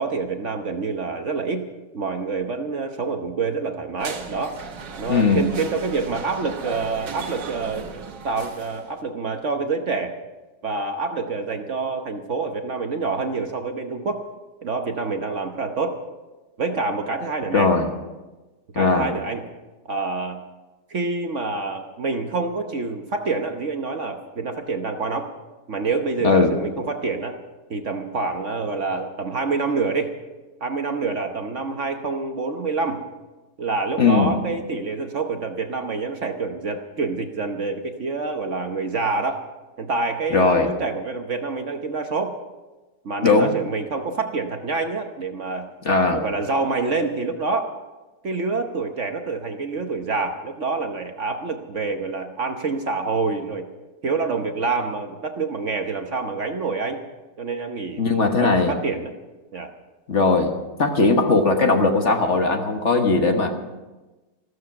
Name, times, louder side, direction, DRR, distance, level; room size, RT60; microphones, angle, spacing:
voice 1, 0.0-1.6 1.9-4.6 5.0-7.9 8.2-10.1 10.6-14.2 14.6-16.0 16.6-17.7 18.7-19.4 19.9-20.4 20.9-25.3 25.7-27.4 27.7-30.1 30.6-33.0 33.6-39.4 39.8-42.4 43.0-45.7 46.1-47.7 48.2-53.6 54.0-57.0 57.4-59.1 59.5-59.7, right 4 dB, 50° right, 5 dB, 1.2 m, -27 dB
sound 1, 4.0-9.0, right 5 dB, 85° right, 1.9 m, -36 dB
voice 2, 5.1-5.4 17.5-17.9 18.7-19.1 26.2-26.5 34.0-34.3 40.3-40.7 43.2-43.5 45.8-46.2 58.0-58.7 60.1-60.5 60.8-63.5, left 3 dB, 45° left, 4 dB, 1.5 m, -18 dB
14.5 x 13.5 x 5.9 m, 1.1 s
omnidirectional pair, 1.8 m